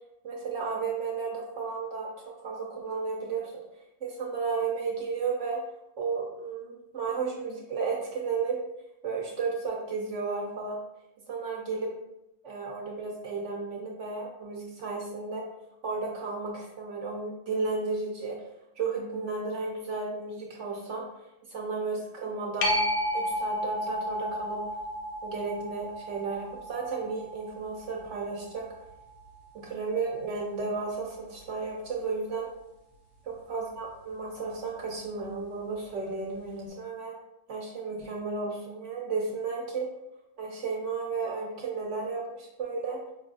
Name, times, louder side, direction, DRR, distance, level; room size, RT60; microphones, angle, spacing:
voice 1, 0.2-2.1 2.4-3.5 4.0-5.6 6.0-8.6 9.0-10.8 11.3-11.9 12.4-15.4 15.8-18.4 18.8-21.0 21.5-22.8 23.1-24.6 25.2-28.7 29.5-32.5 33.3-37.1 37.5-39.9 40.4-43.0, right 4 dB, 65° right, -1 dB, 0.8 m, -33 dB
sound 1, 22.6-29.8 35.3-35.4, equal, 75° left, 1.1 m, -33 dB
5.2 x 2.3 x 2.4 m, 0.88 s
omnidirectional pair, 1.6 m